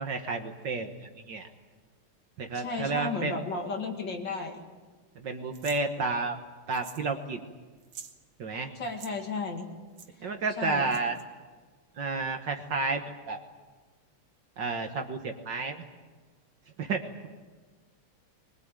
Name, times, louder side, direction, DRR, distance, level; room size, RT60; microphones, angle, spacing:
voice 1, 0.0-1.5 2.4-3.4 5.2-6.4 6.7-7.4 8.4-8.7 10.2-11.2 12.0-13.4 14.6-15.8 16.8-17.3, right 3 dB, 55° right, 5 dB, 1.9 m, -31 dB
voice 2, 2.5-4.7 8.7-9.7 10.6-10.9, left 3 dB, 55° left, 3 dB, 2.7 m, -34 dB
sound 1, 5.5-5.8 6.7-7.1 7.4-7.5 7.8-8.2 8.8-9.1 10.0-10.1 10.9-11.2, right 7 dB, 80° right, 2.4 m, -46 dB
22.5 x 21.0 x 9.0 m, 1.4 s
omnidirectional pair, 2.4 m